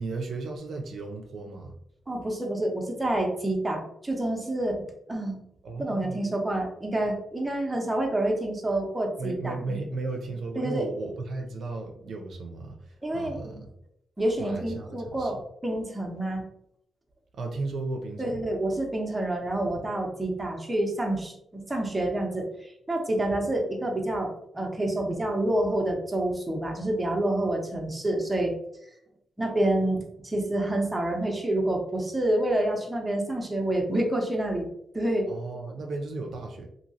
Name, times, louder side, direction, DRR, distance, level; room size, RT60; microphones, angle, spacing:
voice 1, 0.0-1.8 5.6-6.2 9.2-13.7 14.4-15.3 17.3-18.5 35.3-36.7, right 3 dB, 70° right, 2 dB, 0.5 m, -35 dB
voice 2, 2.1-4.8 5.1-5.4 5.8-9.8 10.6-10.9 13.0-13.6 14.2-16.4 18.2-28.5 29.4-34.7 34.9-35.3, right 1 dB, 15° right, 1 dB, 0.7 m, -28 dB
2.9 x 2.7 x 2.7 m, 0.75 s
cardioid pair, 85°, 0 cm